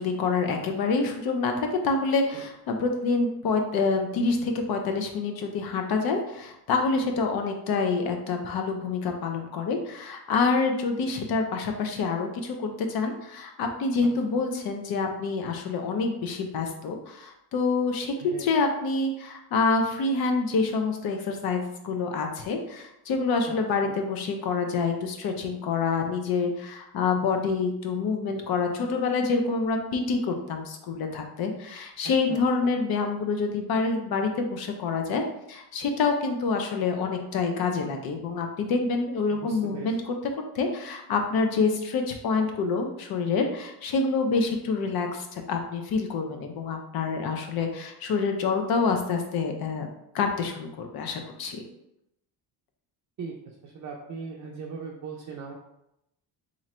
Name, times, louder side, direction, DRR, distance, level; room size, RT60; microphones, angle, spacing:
voice 1, 0.0-18.1 18.4-40.1 40.5-49.9 50.1-51.6, left 4 dB, 65° left, 4 dB, 0.6 m, -27 dB
voice 2, 18.2-18.5 23.8-24.0 32.3-32.8 39.3-39.9 53.2-55.5, right 5 dB, 45° right, -1 dB, 0.5 m, -39 dB
3.1 x 2.5 x 4.2 m, 0.83 s
cardioid pair, 175°, 40 cm